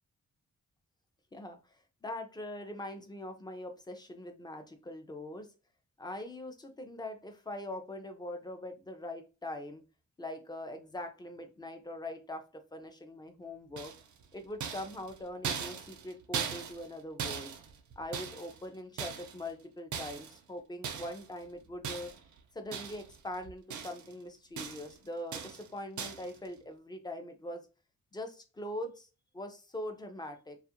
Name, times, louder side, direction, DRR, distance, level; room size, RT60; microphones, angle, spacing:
voice 1, 2.0-5.5 6.0-9.8 10.2-13.9 14.3-17.5 18.0-22.1 22.5-27.6 28.1-29.1 29.3-30.6, left 1 dB, 15° left, 6 dB, 0.4 m, -42 dB
sound 1, 13.8-14.2 14.6-16.9 17.2-18.6 19.0-19.5 19.9-20.4 20.8-21.3 21.8-22.3 22.7-23.2 23.4-24.1 24.6-25.0 25.3-25.7 26.0-26.3, right 7 dB, 80° right, 0.5 m, -39 dB
2.4 x 2.4 x 2.8 m, 0.32 s
wide cardioid pair, 135°, 29 cm